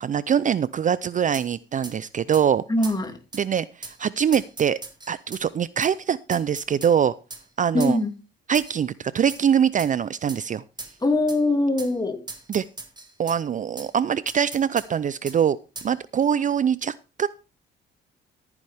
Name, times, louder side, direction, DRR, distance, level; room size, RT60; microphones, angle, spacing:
voice 1, 0.0-2.6 3.3-4.8 5.1-7.1 7.6-8.0 8.5-10.6 12.5-12.6 13.2-15.6 15.8-17.3, right 8 dB, 40° right, 18 dB, 0.5 m, -23 dB
sound 1, 1.3-1.5 1.8-2.0 2.3-2.5 2.8-3.0 3.3-3.4 3.8-4.0 4.3-5.4 5.8-5.9 6.3-6.9 7.3-7.4 7.8-8.0 8.5-8.8 9.3-9.4 9.8-9.9 10.3-10.4 10.8-11.0 11.3-11.4 11.8-11.9 12.3-13.4 13.8-13.9 14.3-14.9 15.3-15.4 15.8-15.9, right 3 dB, 20° right, 2.1 m, -39 dB
voice 2, 2.7-3.1 7.7-8.1 11.0-12.2, left 2 dB, 20° left, 6 dB, 2.5 m, -22 dB
14.0 x 9.8 x 3.5 m, 0.31 s
cardioid pair, 90°, 20 cm